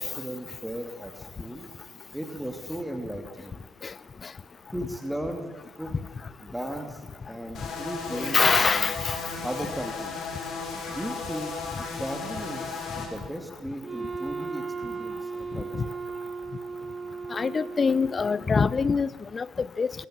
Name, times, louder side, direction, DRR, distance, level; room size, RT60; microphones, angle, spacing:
voice 1, 0.0-1.7 2.1-3.7 4.7-5.5 5.8-5.9 6.4-8.9 9.4-10.3 10.9-11.5 11.9-15.7, right 1 dB, 5° right, 5 dB, 2.7 m, -36 dB
sound 1, 7.5-13.1, left 4 dB, 55° left, 5.3 m, -35 dB
voice 2, 8.1-9.2 15.7-15.8 17.3-19.9, left 5 dB, 35° left, 20 dB, 0.8 m, -24 dB
Wind instrument woodwind instrument, 13.8-18.6, right 4 dB, 35° right, 1.0 m, -36 dB
21.5 x 17.5 x 7.6 m, 1.3 s
hypercardioid pair, 60°, 0 cm